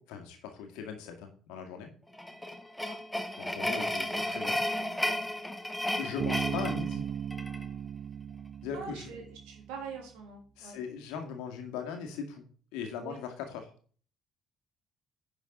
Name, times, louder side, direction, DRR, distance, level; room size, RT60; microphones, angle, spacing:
voice 1, 0.0-1.9 3.4-4.6 6.0-7.0 8.6-9.0 10.6-12.4 12.7-13.7, left 6 dB, 65° left, 5 dB, 2.0 m, -39 dB
sound 1, 2.1-7.7, left 1 dB, 5° left, 1.6 m, -33 dB
Bass guitar, 6.2-9.8, right 8 dB, 50° right, 0.3 m, -36 dB
voice 2, 8.7-10.8 13.0-13.2, right 5 dB, 70° right, 2 dB, 3.2 m, -43 dB
10.5 x 6.9 x 3.9 m, 0.41 s
figure-of-eight pair, 50°, 0 cm